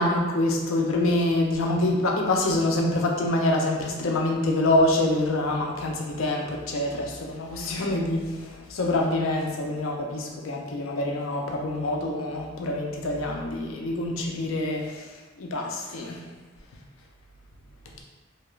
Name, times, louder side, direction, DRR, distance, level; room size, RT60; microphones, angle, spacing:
voice 1, 0.0-15.1 15.4-16.3, left 1 dB, 80° left, 0 dB, 0.5 m, -26 dB
2.7 x 2.3 x 3.1 m, 1.2 s
head